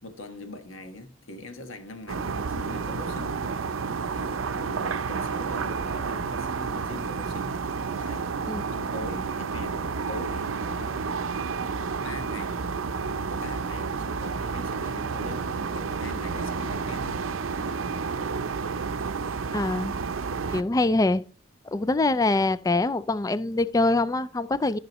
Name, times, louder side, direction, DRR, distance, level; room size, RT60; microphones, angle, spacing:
voice 1, 0.0-3.4 4.1-7.6 7.9-8.3 8.7-11.0 12.0-12.6 13.3-17.2 17.5-17.9, left 2 dB, 80° left, 1.5 m, -42 dB
sound 1, 2.1-20.6, right 5 dB, 85° right, 0.6 m, -30 dB
voice 2, 19.5-20.0 20.5-21.2 21.7-24.8, left 2 dB, 15° left, 0.3 m, -24 dB
14.0 x 6.3 x 3.0 m
head